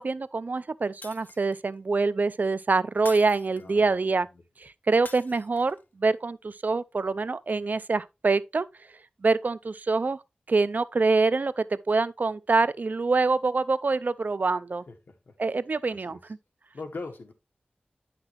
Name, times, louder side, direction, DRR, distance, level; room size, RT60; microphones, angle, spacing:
voice 1, 0.0-4.3 4.6-8.7 9.2-10.2 10.5-14.8 15.4-16.2, right 3 dB, 60° right, 0.5 m, -25 dB
Shatter, 1.0-1.7 3.0-3.9 5.1-5.8, left 3 dB, 60° left, 0.9 m, -46 dB
voice 2, 14.9-15.3 15.9-16.3 16.7-17.3, left 3 dB, 90° left, 1.5 m, -41 dB
9.8 x 5.9 x 3.0 m
wide cardioid pair, 80°, 3 cm